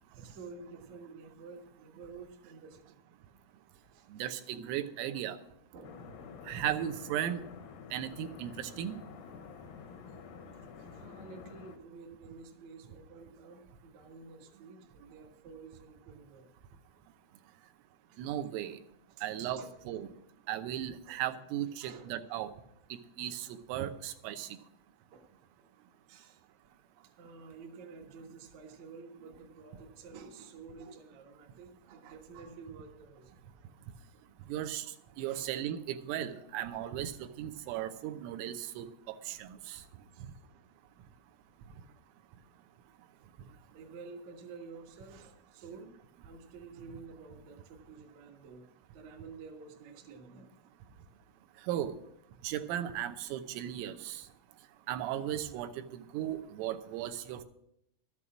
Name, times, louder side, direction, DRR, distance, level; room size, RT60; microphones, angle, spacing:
voice 1, 0.1-3.0 3.7-4.2 4.5-4.7 5.7-6.0 10.1-10.2 10.8-16.5 18.1-18.2 19.1-19.7 21.0-21.2 21.6-22.1 24.3-24.4 25.1-25.7 26.1-26.4 26.9-33.4 35.0-35.5 37.2-37.3 39.7-39.8 40.1-40.3 41.0-41.1 43.5-45.9 46.2-48.7 48.9-50.7, right 4 dB, 65° right, 1 dB, 1.8 m, -51 dB
voice 2, 4.1-5.4 6.5-7.4 7.9-9.0 18.2-18.8 19.2-20.1 20.5-22.5 22.9-24.6 34.5-34.9 35.2-39.8 51.6-52.0 52.4-54.3 54.9-57.4, right 11 dB, 85° right, 8 dB, 3.5 m, -36 dB
sound 1, 5.8-11.8, left 5 dB, 85° left, 2.0 m, -49 dB
12.5 x 8.4 x 6.1 m, 0.76 s
omnidirectional pair, 5.8 m